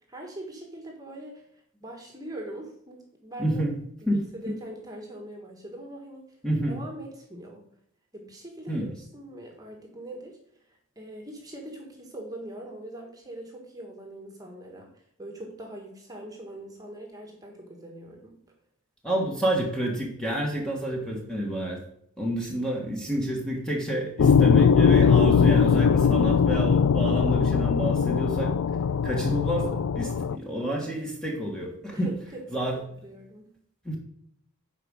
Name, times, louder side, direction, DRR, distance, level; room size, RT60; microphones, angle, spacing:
voice 1, 0.1-3.6 4.0-6.4 6.6-7.7 8.1-10.4 10.7-18.3 31.9-33.5, right 1 dB, 15° right, 1 dB, 1.5 m, -42 dB
voice 2, 3.4-3.8 4.1-4.6 6.4-6.8 8.7-8.9 19.0-21.8 22.2-28.5 29.0-32.1 32.5-32.8 33.8-34.0, right 1 dB, 5° left, -1 dB, 1.5 m, -29 dB
sound 1, 24.2-30.4, left 6 dB, 70° left, 0.3 m, -20 dB
9.1 x 5.1 x 6.5 m, 0.68 s
head